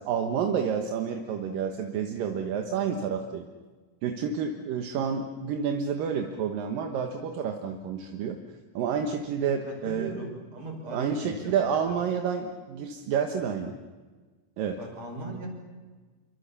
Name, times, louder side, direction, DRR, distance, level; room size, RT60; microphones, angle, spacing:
voice 1, 0.0-3.5 4.0-8.4 8.7-10.1 10.9-13.8 14.6-14.8, right 7 dB, 80° right, 4 dB, 3.0 m, -29 dB
voice 2, 9.4-12.0 14.8-15.5, right 2 dB, 50° right, 2 dB, 6.6 m, -38 dB
28.0 x 25.0 x 7.0 m, 1.3 s
omnidirectional pair, 4.0 m